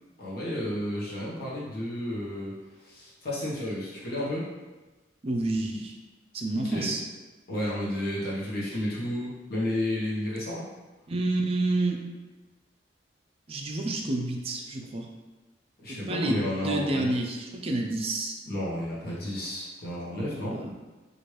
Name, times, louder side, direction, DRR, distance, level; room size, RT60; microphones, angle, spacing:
voice 1, 0.2-2.5 2.8-4.5 6.6-6.9 7.5-10.7 15.8-17.1 18.5-20.6, left 1 dB, 55° left, -7 dB, 0.9 m, -32 dB
voice 2, 5.2-5.9 6.3-7.0 11.1-12.0 13.5-15.1 15.9-18.4 20.4-20.7, right 2 dB, 35° right, 2 dB, 0.4 m, -29 dB
3.0 x 2.5 x 3.1 m, 1.2 s
head